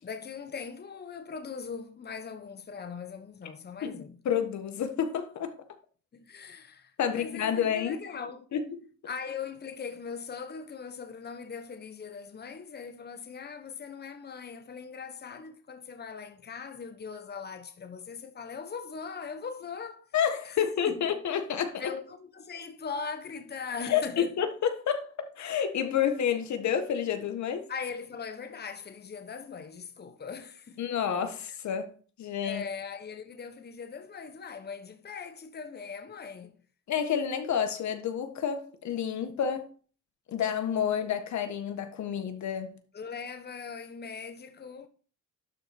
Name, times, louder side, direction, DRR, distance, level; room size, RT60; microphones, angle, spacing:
voice 1, 0.0-4.2 6.1-8.5 9.1-20.1 20.4-21.2 21.8-24.3 27.7-30.8 32.4-36.6 42.9-44.9, left 5 dB, 35° left, 1.2 m, -40 dB
voice 2, 3.8-5.5 7.0-8.0 8.5-8.6 20.1-21.9 23.8-27.6 30.8-31.9 32.2-32.6 36.9-39.7 40.3-42.8, left 8 dB, 65° left, 1.5 m, -29 dB
12.0 x 4.5 x 4.4 m
cardioid pair, 90°, 30 cm